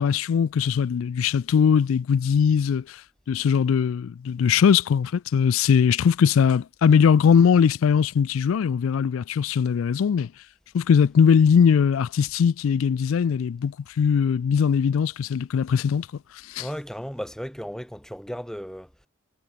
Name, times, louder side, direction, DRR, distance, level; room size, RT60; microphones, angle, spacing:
voice 1, 0.0-3.0 3.3-10.3 10.7-16.1 16.5-16.6, left 7 dB, 85° left, 0.3 m, -20 dB
voice 2, 16.6-19.1, equal, 5° left, 2.6 m, -35 dB
head